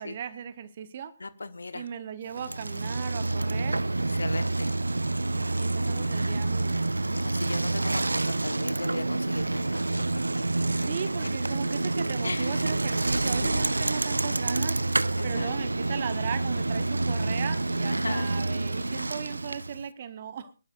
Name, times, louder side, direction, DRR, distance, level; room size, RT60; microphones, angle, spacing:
voice 1, 0.0-1.1 1.7-3.8 5.3-6.9 10.8-14.8 15.2-20.5, right 8 dB, 40° right, 13 dB, 0.9 m, -37 dB
voice 2, 1.2-1.9 3.2-3.6 4.1-4.7 7.2-9.8 12.2-12.8 13.2-13.7 15.2-15.6 18.0-18.3, left 3 dB, 65° left, 13 dB, 1.1 m, -38 dB
Bicycle, 2.3-19.8, right 2 dB, 75° right, 0.5 m, -28 dB
23.0 x 12.0 x 2.5 m, 0.32 s
figure-of-eight pair, 140°, 0 cm